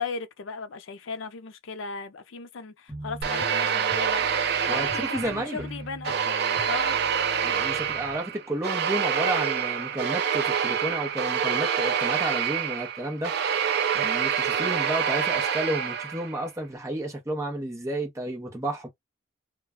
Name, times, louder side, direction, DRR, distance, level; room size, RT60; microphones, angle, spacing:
voice 1, 0.0-4.3 4.7-6.4 6.6-7.0 14.6-14.8, left 5 dB, 70° left, 0.5 m, -36 dB
sound 1, 2.9-8.2, right 1 dB, 10° left, 1.1 m, -42 dB
sound 2, 3.2-5.6 6.0-16.4, right 7 dB, 50° right, 0.4 m, -26 dB
voice 2, 4.7-5.7 7.4-13.3 13.9-18.9, right 1 dB, 15° right, 0.7 m, -31 dB
2.3 x 2.2 x 3.5 m
head